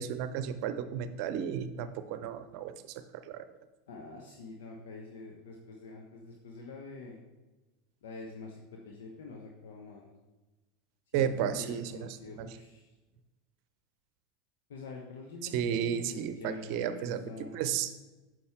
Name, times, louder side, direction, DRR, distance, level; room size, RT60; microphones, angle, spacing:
voice 1, 0.0-3.4 11.1-12.5 15.4-17.9, right 9 dB, 55° right, 11 dB, 0.7 m, -33 dB
voice 2, 3.9-7.2 8.0-10.1 11.1-12.9 14.7-17.5, left 3 dB, 65° left, 0 dB, 1.1 m, -46 dB
9.5 x 6.1 x 3.6 m, 1.1 s
figure-of-eight pair, 80°, 0 cm